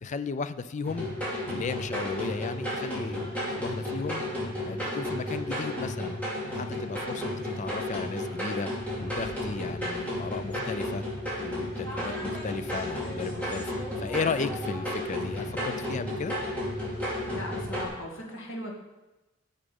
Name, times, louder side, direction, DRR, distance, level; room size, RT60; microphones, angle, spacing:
voice 1, 0.0-1.1 1.5-4.2 4.6-6.2 6.5-8.7 9.0-11.0 11.4-13.7 14.0-16.4, left 4 dB, 35° left, 13 dB, 0.4 m, -35 dB
sound 1, 0.8-17.9, left 1 dB, 10° left, 3.2 m, -33 dB
voice 2, 17.3-18.7, left 1 dB, 70° left, -1 dB, 2.1 m, -38 dB
7.4 x 6.8 x 5.3 m, 1.1 s
head